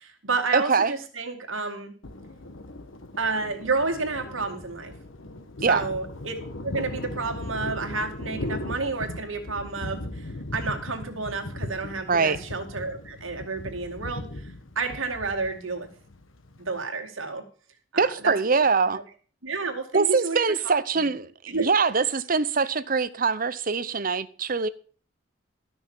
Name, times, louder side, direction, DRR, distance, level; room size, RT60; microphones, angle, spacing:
voice 1, 0.0-1.9 3.2-4.9 5.7-6.4 6.6-15.9 16.6-17.4 17.9-18.3 18.9-19.0 19.4-20.4 20.6-20.7 21.5-21.7, right 3 dB, 85° right, 2.3 m, -30 dB
voice 2, 0.5-0.9 5.6-5.8 12.1-12.4 18.0-19.0 19.9-24.7, right 4 dB, 45° right, 0.8 m, -23 dB
Thunder, 2.0-16.8, left 1 dB, 80° left, 1.3 m, -38 dB
13.0 x 6.3 x 7.2 m
head